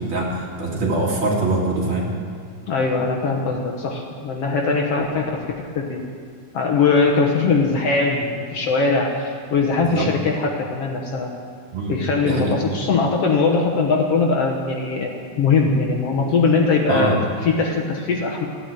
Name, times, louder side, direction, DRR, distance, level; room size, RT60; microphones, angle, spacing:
voice 1, 0.0-2.1 9.9-10.1 11.7-11.9 12.2-12.6 16.9-17.2, right 2 dB, 45° right, -3 dB, 2.9 m, -23 dB
voice 2, 2.7-5.3 5.8-6.0 6.5-11.3 11.9-18.5, left 4 dB, 60° left, 1 dB, 2.0 m, -21 dB
14.5 x 9.6 x 9.1 m, 2.2 s
omnidirectional pair, 3.4 m